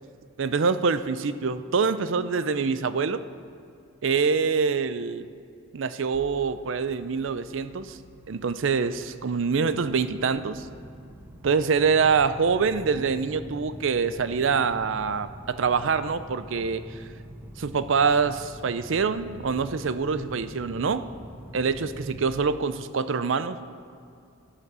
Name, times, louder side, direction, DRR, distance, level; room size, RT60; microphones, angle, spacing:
voice 1, 0.4-3.2 4.0-5.3 5.7-8.0 8.3-10.7 11.4-16.9 17.6-21.1 21.5-23.6, right 5 dB, 70° right, 13 dB, 0.5 m, -25 dB
sound 1, 6.1-22.3, equal, 10° right, 0.6 m, -45 dB
11.0 x 11.0 x 6.7 m, 2.5 s
head